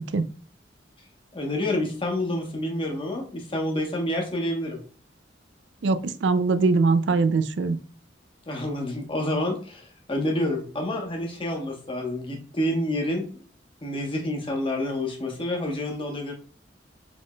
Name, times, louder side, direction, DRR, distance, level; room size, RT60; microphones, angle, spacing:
voice 1, 1.3-4.8 8.5-13.3 13.8-16.3, left 1 dB, 30° left, 2 dB, 1.2 m, -28 dB
voice 2, 5.8-7.8, right 4 dB, 70° right, 12 dB, 0.4 m, -22 dB
5.0 x 3.6 x 2.3 m, 0.42 s
head